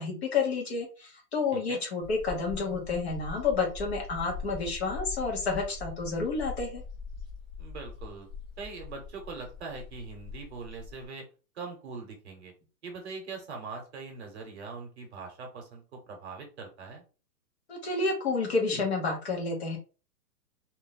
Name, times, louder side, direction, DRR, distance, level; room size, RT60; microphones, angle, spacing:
voice 1, 0.0-6.8 17.7-19.8, left 4 dB, 40° left, 0 dB, 0.9 m, -30 dB
voice 2, 1.5-1.8 7.6-8.3 8.6-11.2 11.5-12.5 12.8-17.0, right 4 dB, 40° right, 2 dB, 0.9 m, -42 dB
sound 1, 2.0-11.1, left 5 dB, 10° right, 0.5 m, -42 dB
2.6 x 2.1 x 3.8 m, 0.35 s
hypercardioid pair, 170°, 50 cm